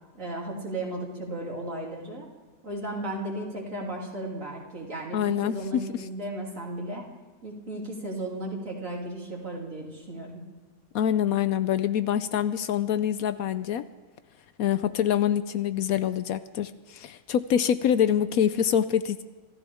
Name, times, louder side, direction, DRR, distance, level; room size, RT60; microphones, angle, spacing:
voice 1, 0.1-2.3 2.6-7.1 7.4-10.4, right 1 dB, 55° right, -2 dB, 3.4 m, -35 dB
voice 2, 5.1-5.8 10.9-13.8 14.6-19.2, left 9 dB, 70° left, 13 dB, 1.0 m, -25 dB
26.0 x 14.5 x 3.5 m, 1.4 s
omnidirectional pair, 1.6 m